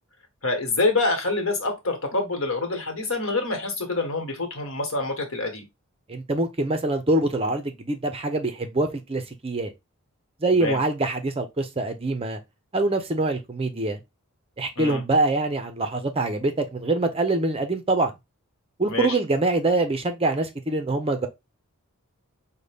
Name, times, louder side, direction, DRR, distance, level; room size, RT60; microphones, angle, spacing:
voice 1, 0.4-5.6 10.5-10.8 14.8-15.0 18.9-19.2, left 3 dB, 60° left, 1.3 m, -26 dB
voice 2, 6.1-9.7 10.4-12.4 12.7-14.0 14.6-18.1 18.8-21.3, right 2 dB, 25° right, 0.5 m, -24 dB
5.3 x 2.2 x 3.3 m
head